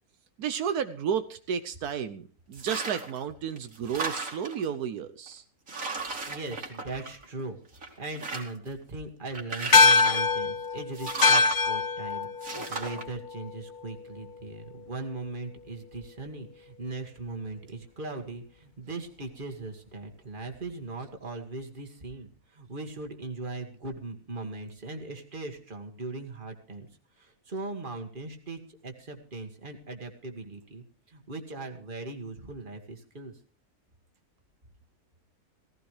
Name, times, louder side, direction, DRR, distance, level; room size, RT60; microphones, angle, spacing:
voice 1, 0.4-5.4, right 8 dB, 80° right, 10 dB, 1.3 m, -32 dB
sound 1, 2.5-3.2 3.6-4.6 5.3-5.4 5.7-7.4 7.8-8.7 9.3-10.3 10.9-11.6 12.4-13.0, right 4 dB, 60° right, 2.9 m, -34 dB
voice 2, 6.3-7.6 8.0-26.9 27.2-33.3, right 3 dB, 35° right, 4 dB, 2.2 m, -39 dB
sound 2, 9.7-14.4, left 4 dB, 40° left, 0.7 m, -24 dB
17.5 x 15.5 x 3.3 m, 0.42 s
omnidirectional pair, 1.6 m